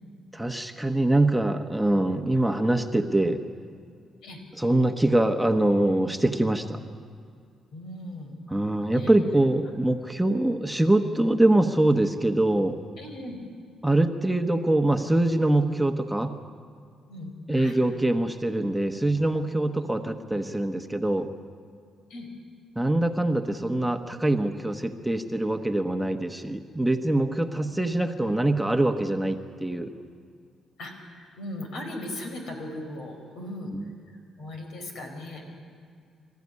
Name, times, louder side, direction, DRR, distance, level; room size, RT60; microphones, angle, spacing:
voice 1, 0.3-3.4 4.6-6.8 8.5-12.8 13.8-16.4 17.5-21.3 22.7-29.9 33.7-33.9, right 1 dB, 5° right, 5 dB, 1.2 m, -24 dB
voice 2, 7.7-8.4 8.9-9.1 13.0-13.4 17.1-17.8 19.8-19.9 22.1-22.3 27.7-27.8 30.8-35.6, left 1 dB, 80° left, 3 dB, 4.9 m, -38 dB
26.0 x 14.5 x 9.7 m, 2.2 s
cardioid pair, 90°, 0 cm